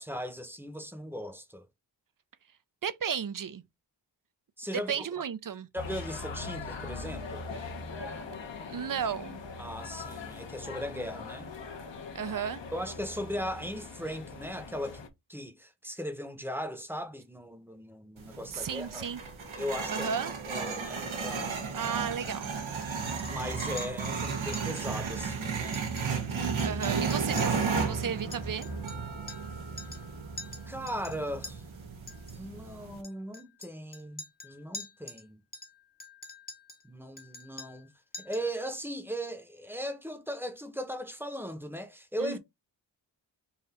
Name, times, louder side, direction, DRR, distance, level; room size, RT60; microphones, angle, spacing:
voice 1, 0.0-1.7 4.6-5.1 5.7-7.5 9.6-11.5 12.7-15.0 15.3-19.1 19.6-20.1 20.5-21.8 23.2-25.8 30.7-31.6 32.3-35.4 36.8-37.9 38.2-42.4, equal, 5° right, 0.9 m, -38 dB
voice 2, 2.8-3.6 4.7-5.7 8.7-9.4 12.1-12.6 18.5-19.2 19.9-20.3 21.7-22.5 26.6-28.7 42.2-42.4, right 7 dB, 45° right, 0.6 m, -34 dB
sound 1, 5.8-15.1, left 4 dB, 70° left, 1.2 m, -41 dB
sound 2, 18.2-33.0, right 5 dB, 85° right, 1.3 m, -34 dB
Chink clink, 22.3-22.9 23.2-23.3 23.6-24.2 24.5-24.9 25.1-25.2 25.6-26.3 26.6-29.5 29.8-30.1 30.4-31.5 32.1-32.4 33.0-35.2 35.5-36.8 37.2-37.9 38.1-38.5, left 2 dB, 20° left, 0.9 m, -45 dB
4.1 x 2.5 x 4.2 m
cardioid pair, 65°, 46 cm